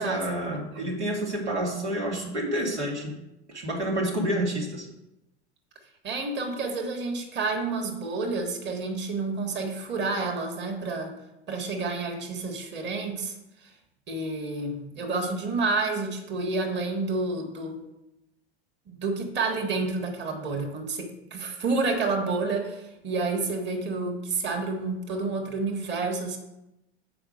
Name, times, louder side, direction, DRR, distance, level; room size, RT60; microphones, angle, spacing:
voice 1, 0.0-3.2 3.5-4.9, right 1 dB, 85° right, -2 dB, 2.2 m, -29 dB
voice 2, 6.0-11.2 11.5-13.3 14.1-17.8 18.9-26.4, right 3 dB, 30° right, 2 dB, 1.6 m, -29 dB
7.7 x 4.8 x 5.1 m, 0.90 s
hypercardioid pair, 90°, 34 cm